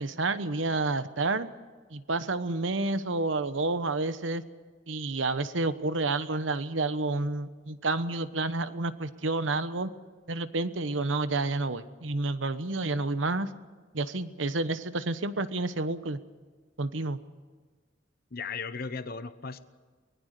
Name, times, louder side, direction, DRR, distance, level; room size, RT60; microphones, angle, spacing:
voice 1, 0.0-1.5 1.9-4.4 4.9-9.9 10.3-13.5 13.9-16.2 16.8-17.2, right 2 dB, 90° right, 12 dB, 1.1 m, -29 dB
voice 2, 18.3-19.6, left 5 dB, 55° left, 12 dB, 1.0 m, -36 dB
24.0 x 20.5 x 6.7 m, 1.4 s
head